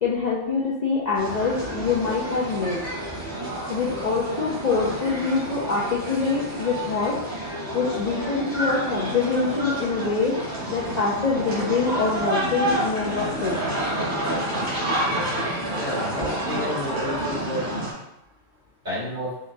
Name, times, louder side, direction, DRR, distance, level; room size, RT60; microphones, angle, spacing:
voice 1, 0.0-2.8 3.7-7.2 7.7-10.4 10.7-13.6, left 4 dB, 50° left, -5 dB, 0.5 m, -25 dB
sound 1, 1.1-17.9, right 1 dB, 70° right, 1.9 m, -29 dB
voice 2, 15.7-17.6 18.8-19.3, left 1 dB, 45° right, -8 dB, 1.8 m, -30 dB
5.4 x 2.4 x 2.6 m, 0.84 s
omnidirectional pair, 1.1 m